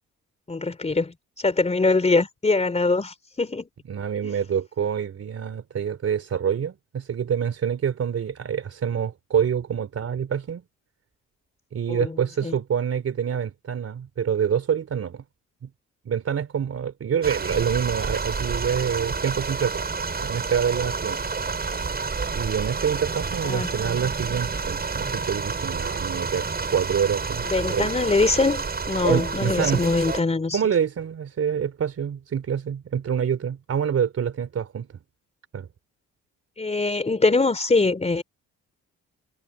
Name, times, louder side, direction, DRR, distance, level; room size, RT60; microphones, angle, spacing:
voice 1, 0.5-3.7 4.2-4.3 11.9-12.5 23.4-23.8 27.4-30.6 36.6-38.2, left 3 dB, 20° left, 3.2 m, -23 dB
voice 2, 3.9-10.6 11.7-15.2 15.6-15.7 16.1-19.8 20.2-21.2 22.3-27.9 29.1-29.8 30.5-34.9 35.5-35.7, right 8 dB, 55° right, 3.5 m, -26 dB
sound 1, 17.2-30.2, right 4 dB, 30° right, 5.6 m, -29 dB
cardioid pair, 90°, 30 cm